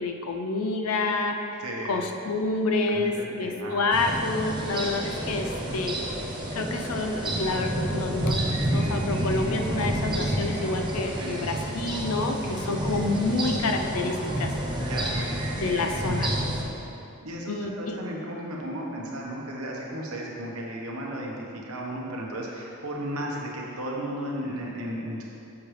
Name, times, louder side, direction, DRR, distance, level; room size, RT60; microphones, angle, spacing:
voice 1, 0.0-6.0 6.5-14.5 15.5-16.3 17.5-18.0, left 3 dB, 85° left, 4 dB, 0.6 m, -28 dB
voice 2, 1.6-2.0 2.9-3.8 11.2-11.5 14.8-15.8 17.2-21.3 21.7-25.2, right 1 dB, 85° right, -2 dB, 1.1 m, -34 dB
sound 1, 3.9-16.6, right 1 dB, 20° right, 0.9 m, -29 dB
7.0 x 6.3 x 3.4 m, 2.8 s
head